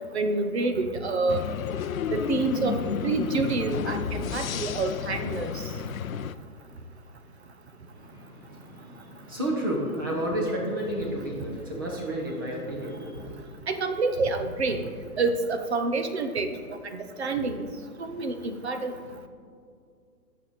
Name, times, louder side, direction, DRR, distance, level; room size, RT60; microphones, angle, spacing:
voice 1, 0.1-1.4 2.1-5.5 13.7-14.8 15.2-16.5 17.2-17.6 18.0-18.9, right 3 dB, 45° right, 8 dB, 0.9 m, -27 dB
sound 1, 1.3-6.3, left 8 dB, 60° left, 0.5 m, -31 dB
voice 2, 7.9-13.5, right 1 dB, 15° right, -1 dB, 0.8 m, -31 dB
17.0 x 6.4 x 4.2 m, 2.3 s
hypercardioid pair, 170°, 46 cm